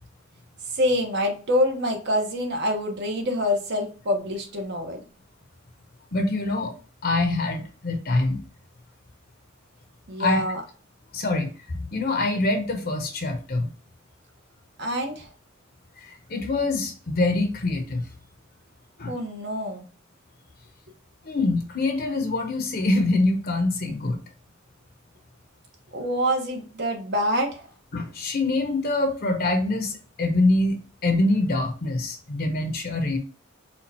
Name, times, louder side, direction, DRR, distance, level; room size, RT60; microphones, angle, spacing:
voice 1, 0.7-5.0 10.1-10.6 14.8-15.3 19.1-19.9 25.9-27.7, equal, 55° right, 3 dB, 1.0 m, -26 dB
voice 2, 6.1-6.7 7.0-8.4 10.2-10.4 11.1-13.7 16.0-18.0 19.0-19.1 21.2-24.2 27.9-33.2, left 2 dB, 50° left, 5 dB, 0.7 m, -25 dB
4.3 x 2.3 x 4.2 m, 0.36 s
head